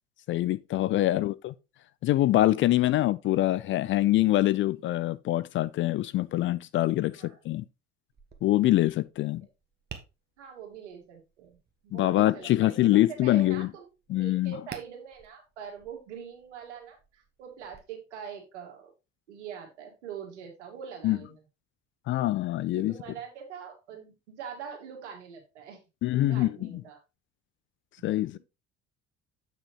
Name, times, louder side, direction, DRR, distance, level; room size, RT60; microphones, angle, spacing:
voice 1, 0.3-1.5 2.0-7.6 8.4-9.4 11.9-13.7 14.1-14.6 21.0-21.2 22.1-22.9 26.0-26.8 28.0-28.4, left 15 dB, 35° left, 0.4 m, -24 dB
voice 2, 7.1-7.4 10.4-12.9 13.2-18.9 19.3-21.4 22.8-25.8 26.1-27.0 28.3-28.4, right 7 dB, 75° right, 2.0 m, -44 dB
Tap, 8.1-17.8, right 6 dB, 30° right, 1.4 m, -52 dB
7.6 x 6.1 x 3.0 m
figure-of-eight pair, 60°, 35 cm